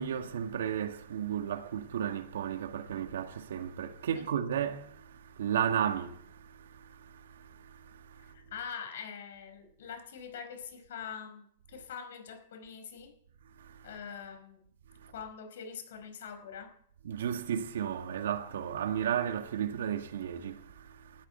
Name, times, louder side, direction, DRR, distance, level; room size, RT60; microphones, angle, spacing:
voice 1, 0.0-8.3 13.6-13.9 15.0-15.1 17.0-21.3, right 9 dB, 80° right, 1.8 m, -34 dB
voice 2, 8.3-13.1 13.8-14.6 15.1-16.7, left 7 dB, 65° left, 4.8 m, -44 dB
18.5 x 13.0 x 4.4 m
supercardioid pair, 170°, 0 cm